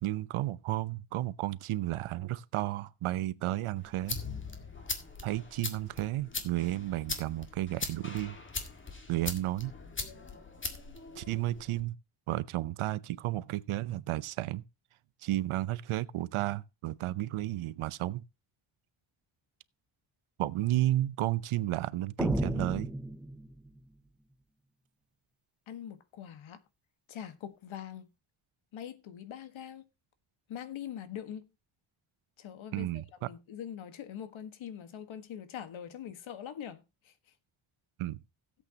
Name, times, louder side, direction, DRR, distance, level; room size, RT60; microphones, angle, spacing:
voice 1, 0.0-4.2 5.2-8.4 9.1-9.7 11.2-12.0 12.3-14.6 15.2-18.2 20.4-22.9 32.7-33.0 38.0-38.2, right 15 dB, 80° right, 0.8 m, -32 dB
sound 1, 3.8-11.8, left 3 dB, 25° left, 1.8 m, -41 dB
sound 2, 22.2-23.8, right 1 dB, ahead, 0.5 m, -33 dB
voice 2, 25.7-26.6 27.1-28.1 28.7-29.9 30.5-31.5 32.4-37.1, left 9 dB, 70° left, 1.6 m, -43 dB
16.5 x 8.3 x 2.9 m
wide cardioid pair, 180°, 49 cm